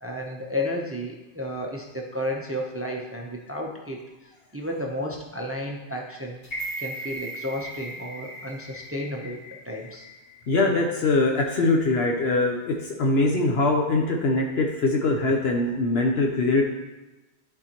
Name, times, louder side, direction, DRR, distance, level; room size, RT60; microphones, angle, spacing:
voice 1, 0.0-4.0 4.5-6.5 6.8-10.1, left 1 dB, 15° right, 0 dB, 0.6 m, -32 dB
sound 1, 6.4-10.6 11.0-11.1, right 1 dB, 90° left, 1.8 m, -38 dB
voice 2, 10.5-16.6, left 2 dB, 70° left, 1 dB, 1.0 m, -22 dB
11.0 x 4.3 x 2.9 m, 1.1 s
omnidirectional pair, 1.1 m